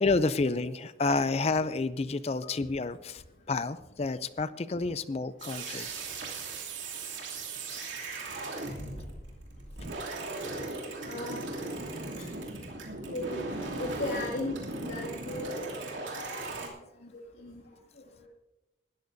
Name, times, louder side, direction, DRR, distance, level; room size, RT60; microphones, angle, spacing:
voice 1, 0.0-5.9 7.8-7.9, left 3 dB, 35° left, 14 dB, 0.4 m, -30 dB
sound 1, 5.4-16.7, right 2 dB, 85° right, 2.7 m, -38 dB
voice 2, 11.0-11.4 12.2-12.3 13.1-13.4 13.8-15.7 16.3-16.7 17.0-17.1 17.4-17.6 18.2-18.3, left 1 dB, 85° left, -4 dB, 2.3 m, -37 dB
20.0 x 13.0 x 2.7 m, 1.0 s
head